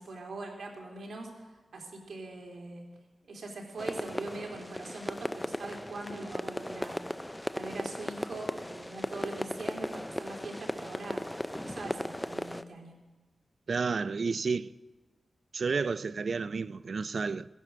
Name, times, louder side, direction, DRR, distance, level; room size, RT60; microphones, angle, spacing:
voice 1, 0.0-2.8 3.2-7.0 7.5-11.2 11.6-12.9, right 2 dB, 90° right, 3.4 m, -42 dB
sound 1, 3.8-12.6, left 1 dB, 10° left, 0.5 m, -37 dB
voice 2, 13.7-14.7 15.5-17.5, right 4 dB, 60° right, 0.4 m, -31 dB
17.0 x 11.0 x 7.5 m
wide cardioid pair, 110°, 0 cm